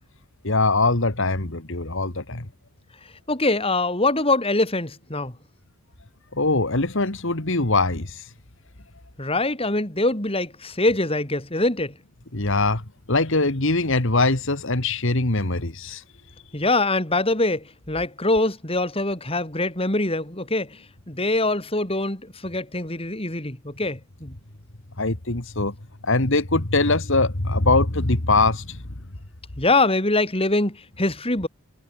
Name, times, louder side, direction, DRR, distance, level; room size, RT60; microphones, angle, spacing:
voice 1, 0.4-2.5 6.3-8.2 12.3-12.8 13.1-16.0 25.0-25.7 26.0-28.8, left 3 dB, 60° left, 2.1 m, -22 dB
voice 2, 3.3-5.3 9.2-11.9 16.5-20.8 21.1-24.3 29.6-31.5, left 2 dB, 25° left, 3.6 m, -23 dB
head